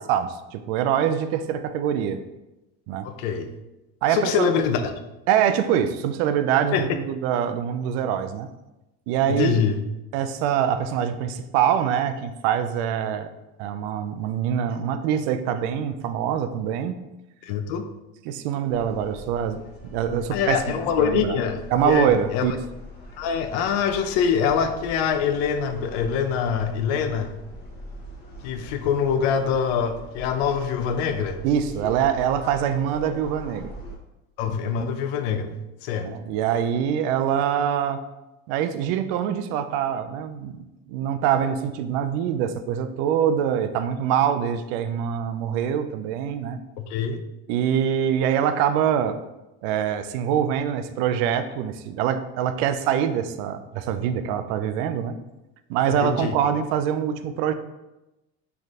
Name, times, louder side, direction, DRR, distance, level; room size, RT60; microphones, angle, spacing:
voice 1, 0.1-2.2 2.9-3.1 4.0-4.5 5.3-8.5 9.1-9.6 10.1-13.3 13.6-17.0 18.3-21.4 21.7-22.5 31.4-33.7 36.0-38.0 38.5-46.6 47.5-49.2 49.6-55.2 55.7-57.5, right 9 dB, 75° right, 10 dB, 0.4 m, -24 dB
voice 2, 3.0-3.5 4.1-4.9 6.7-6.9 9.2-9.8 17.4-17.9 20.3-22.6 23.2-27.3 28.4-31.4 34.4-36.1 46.8-47.2 55.9-56.3, left 7 dB, 80° left, 8 dB, 0.5 m, -24 dB
sound 1, 18.7-34.0, equal, 30° left, 1.0 m, -42 dB
4.1 x 3.3 x 2.5 m, 0.98 s
supercardioid pair, 100°, 31 cm